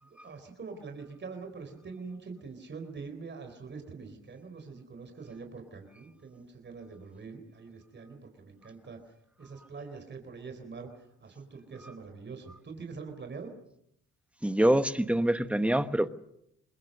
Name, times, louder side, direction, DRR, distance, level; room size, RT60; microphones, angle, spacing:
voice 1, 0.0-9.0 9.4-13.5, right 4 dB, 35° right, 6 dB, 4.1 m, -44 dB
voice 2, 14.4-16.1, right 1 dB, 5° right, 11 dB, 1.1 m, -25 dB
24.5 x 20.5 x 6.6 m, 0.79 s
cardioid pair, 90°, 30 cm